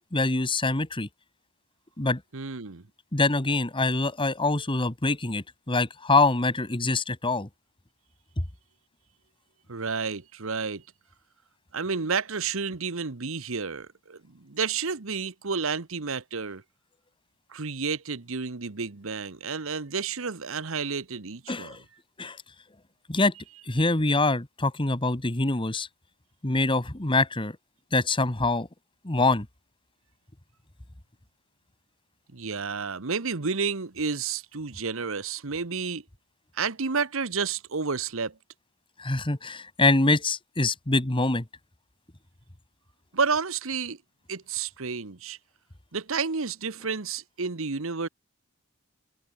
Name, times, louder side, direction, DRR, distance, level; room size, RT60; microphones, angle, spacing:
voice 1, 0.1-1.1 2.0-2.2 3.1-7.5 21.5-21.8 22.2-22.4 23.1-23.3 23.6-25.9 26.4-27.6 27.9-28.7 29.0-29.5 39.0-41.5, left 2 dB, 25° left, 1.5 m, -24 dB
voice 2, 2.3-2.8 9.7-10.8 11.7-16.6 17.5-21.8 32.3-36.0 36.5-38.4 43.1-44.0 44.3-45.4 45.9-48.1, right 5 dB, 65° right, 1.2 m, -30 dB
head